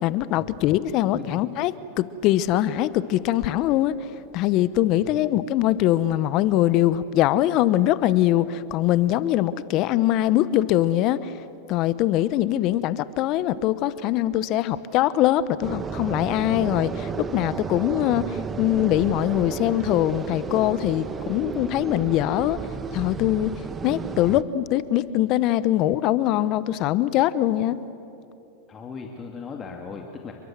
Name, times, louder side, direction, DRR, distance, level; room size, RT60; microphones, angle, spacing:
voice 1, 0.0-3.9 4.3-11.3 11.7-22.6 22.9-23.5 23.8-27.8, left 13 dB, 50° left, 16 dB, 1.0 m, -22 dB
sound 1, 15.6-24.4, right 5 dB, 25° right, 1.2 m, -32 dB
voice 2, 28.7-30.3, left 5 dB, 30° left, 2 dB, 2.3 m, -38 dB
29.0 x 23.0 x 7.5 m, 2.8 s
hypercardioid pair, 100°, 0 cm